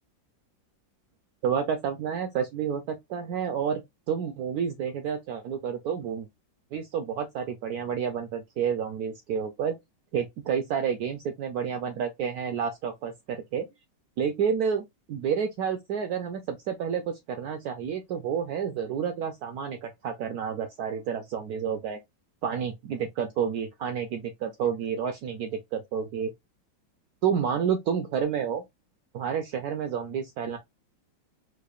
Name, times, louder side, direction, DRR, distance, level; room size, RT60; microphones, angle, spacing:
voice 1, 1.4-6.3 6.7-9.8 10.1-13.7 14.2-22.0 22.4-26.3 27.2-28.6 29.1-30.6, right 7 dB, 70° right, 0.9 m, -30 dB
4.7 x 2.4 x 2.4 m
omnidirectional pair, 2.0 m